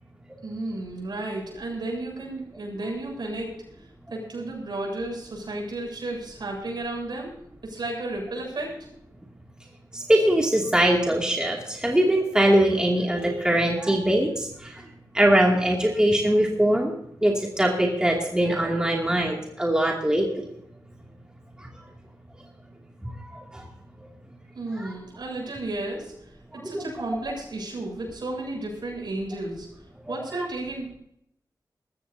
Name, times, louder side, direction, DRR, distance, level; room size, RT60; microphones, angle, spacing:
voice 1, 0.4-3.5 4.1-7.4 7.6-8.7 24.5-26.1 26.5-29.7 30.1-31.0, right 2 dB, 70° right, -1 dB, 7.6 m, -33 dB
voice 2, 9.9-14.8 15.1-16.9 17.2-20.5 21.6-21.7 23.0-23.6 24.8-24.9 26.6-26.9 30.1-30.2, right 1 dB, 10° right, -1 dB, 2.6 m, -22 dB
21.5 x 14.5 x 2.8 m, 0.73 s
wide cardioid pair, 115°, 8 cm